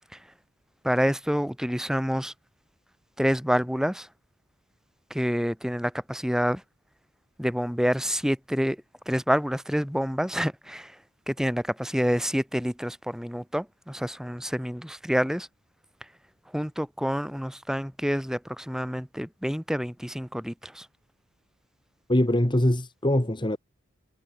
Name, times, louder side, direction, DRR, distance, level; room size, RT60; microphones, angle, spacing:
voice 1, 0.8-2.3 3.2-4.1 5.1-6.6 7.4-11.0 11.3-15.5 16.5-20.9, equal, ahead, 4.7 m, -28 dB
voice 2, 22.1-23.6, left 1 dB, 20° left, 1.7 m, -23 dB
head